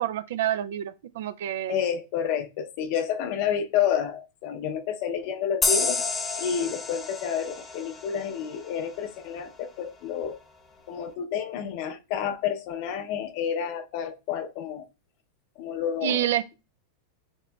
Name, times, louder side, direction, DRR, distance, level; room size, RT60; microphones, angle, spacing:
voice 1, 0.0-1.8 16.0-16.4, right 11 dB, 75° right, 0.4 m, -28 dB
voice 2, 1.7-6.1 6.4-10.4 10.9-14.9 15.6-16.3, left 8 dB, 55° left, 0.7 m, -29 dB
sound 1, 5.6-9.0, left 4 dB, 20° left, 0.9 m, -29 dB
7.2 x 3.0 x 2.3 m
hypercardioid pair, 120°, 0 cm